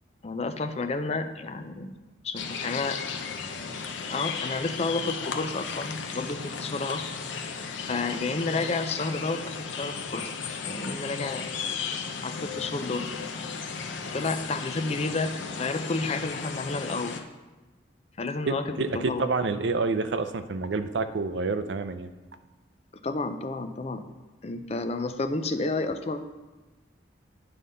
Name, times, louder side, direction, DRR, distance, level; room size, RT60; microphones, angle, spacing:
voice 1, 0.2-3.0 4.1-7.0 7.8-10.3 10.6-11.5 12.2-13.1 14.1-17.2 18.2-19.3 23.0-24.0 24.4-26.3, left 3 dB, 35° left, 8 dB, 0.5 m, -31 dB
sound 1, 2.4-17.2, left 5 dB, 85° left, 0.6 m, -35 dB
voice 2, 18.4-22.1, right 3 dB, 70° right, 10 dB, 0.5 m, -28 dB
9.3 x 3.8 x 5.4 m, 1.2 s
head